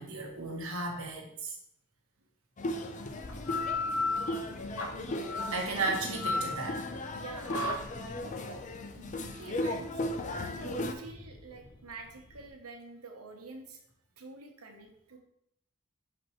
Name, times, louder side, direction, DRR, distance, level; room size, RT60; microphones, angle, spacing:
voice 1, 0.0-1.6 5.5-6.9, right 3 dB, 70° right, 0 dB, 1.4 m, -34 dB
sound 1, 2.6-10.9, left 1 dB, 35° left, 0.5 m, -37 dB
sound 2, 3.3-12.5, left 3 dB, 70° left, 0.8 m, -36 dB
voice 2, 5.3-5.9 7.1-7.9 8.1-8.7 8.9-10.1 10.6-13.8 14.2-15.2, right 3 dB, 90° right, 4 dB, 1.0 m, -48 dB
6.0 x 5.1 x 3.1 m, 0.74 s
head